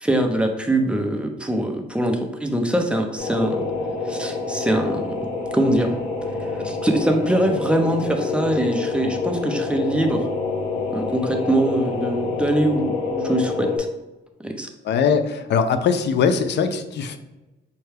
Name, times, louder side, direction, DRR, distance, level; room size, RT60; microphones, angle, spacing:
voice 1, 0.0-3.6 4.0-5.0 5.5-5.9 6.4-10.3 10.9-13.7 14.4-14.7, right 1 dB, 5° right, 3 dB, 0.6 m, -23 dB
sound 1, 3.2-13.8, left 3 dB, 40° left, 1.4 m, -27 dB
voice 2, 14.8-17.2, left 6 dB, 60° left, 8 dB, 0.5 m, -21 dB
5.5 x 2.2 x 3.3 m, 1.0 s
cardioid pair, 90°, 20 cm